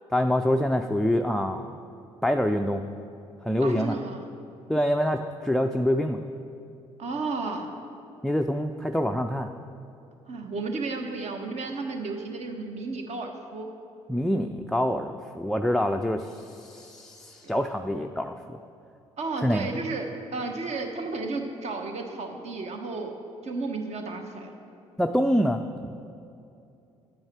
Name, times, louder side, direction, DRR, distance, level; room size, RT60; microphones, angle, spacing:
voice 1, 0.1-1.7 2.2-2.8 3.4-4.0 4.7-6.2 8.2-9.5 14.1-18.6 19.4-19.7 25.0-25.9, equal, ahead, 4 dB, 0.4 m, -26 dB
voice 2, 3.6-4.4 7.0-7.7 10.3-13.7 19.2-23.1 23.4-24.5, right 3 dB, 45° right, 4 dB, 1.1 m, -33 dB
10.5 x 8.7 x 4.3 m, 2.6 s
figure-of-eight pair, 50°, 16 cm